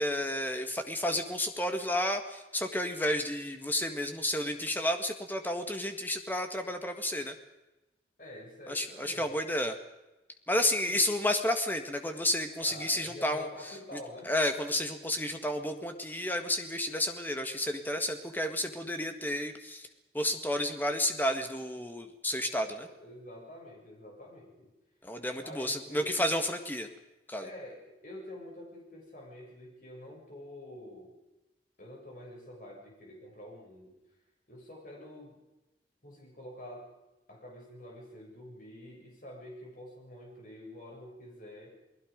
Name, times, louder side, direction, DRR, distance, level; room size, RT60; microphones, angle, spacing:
voice 1, 0.0-7.4 8.7-9.7 10.5-14.0 14.3-19.9 20.1-22.9 25.0-26.9 27.3-27.5, left 1 dB, 10° left, 6 dB, 1.8 m, -31 dB
voice 2, 8.2-9.4 10.5-11.0 12.6-14.3 22.8-24.7 25.4-26.1 27.4-31.2 31.8-33.9 34.5-35.4 36.0-36.9 37.3-41.8, left 1 dB, 45° left, -2 dB, 7.4 m, -47 dB
29.0 x 19.5 x 5.3 m, 1.0 s
head